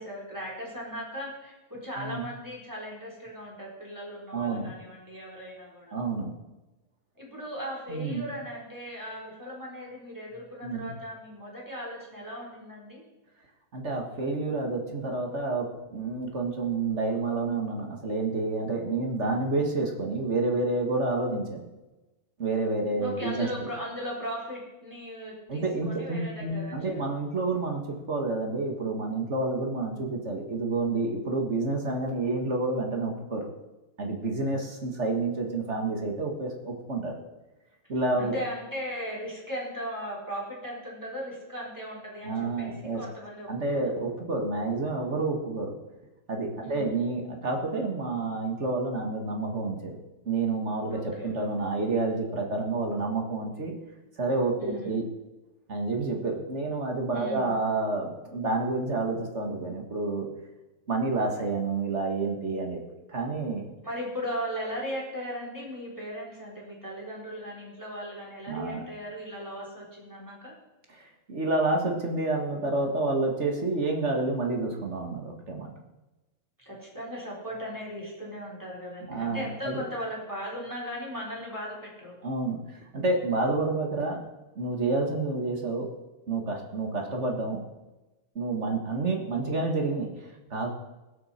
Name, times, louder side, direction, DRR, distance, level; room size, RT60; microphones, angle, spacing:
voice 1, 0.0-5.9 7.2-13.0 23.0-27.0 38.2-43.9 46.6-46.9 50.9-51.3 54.6-54.9 57.1-57.6 63.8-70.5 76.7-82.1, equal, 5° right, -3 dB, 4.1 m, -37 dB
voice 2, 4.3-4.7 5.9-6.3 7.9-8.2 10.6-10.9 13.7-21.6 22.4-23.5 25.5-33.5 34.0-37.2 37.9-38.4 42.2-43.0 43.5-45.7 46.3-50.0 50.2-53.7 54.2-55.0 55.7-60.3 60.9-62.8 63.1-63.7 68.5-68.8 70.9-75.7 79.1-79.8 82.2-82.6 82.9-84.2 84.5-85.9 86.3-87.6 88.3-90.7, right 3 dB, 30° right, 2 dB, 1.4 m, -29 dB
21.5 x 8.2 x 4.4 m, 1.1 s
omnidirectional pair, 3.3 m